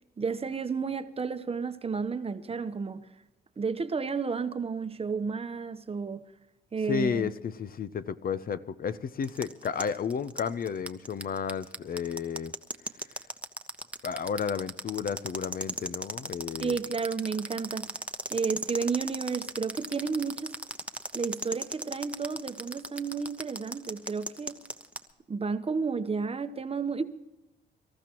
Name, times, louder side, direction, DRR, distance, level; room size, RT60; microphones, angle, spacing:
voice 1, 0.2-3.1 3.6-6.2 6.7-7.3 16.6-17.9 18.3-20.6 21.1-24.6 25.3-27.0, right 5 dB, 30° right, 1.0 m, -32 dB
voice 2, 6.9-12.5 14.0-16.8, left 6 dB, 45° left, 0.7 m, -32 dB
sound 1, 9.2-25.0, right 1 dB, 5° right, 1.0 m, -36 dB
25.5 x 14.0 x 3.0 m
cardioid pair, 90°, 20 cm